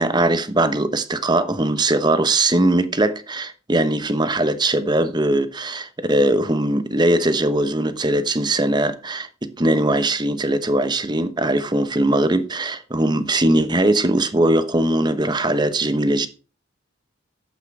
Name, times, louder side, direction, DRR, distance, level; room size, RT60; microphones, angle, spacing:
voice 1, 0.0-9.3 9.6-16.3, right 1 dB, 20° right, 1.1 m, -20 dB
12.0 x 8.4 x 4.9 m
head